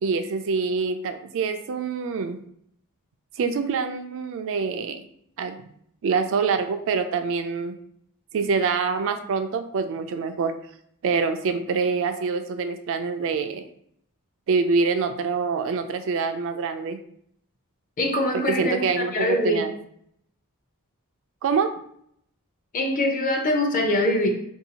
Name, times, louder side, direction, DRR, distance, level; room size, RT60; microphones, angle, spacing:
voice 1, 0.0-2.4 3.4-5.0 5.4-5.6 6.0-7.7 8.3-10.5 11.0-13.7 14.5-17.0 18.3-19.7 21.4-21.7, right 5 dB, 60° right, 8 dB, 0.3 m, -25 dB
voice 2, 18.0-19.6 22.7-24.3, left 1 dB, 40° left, 3 dB, 0.6 m, -23 dB
3.9 x 2.7 x 2.8 m, 0.68 s
head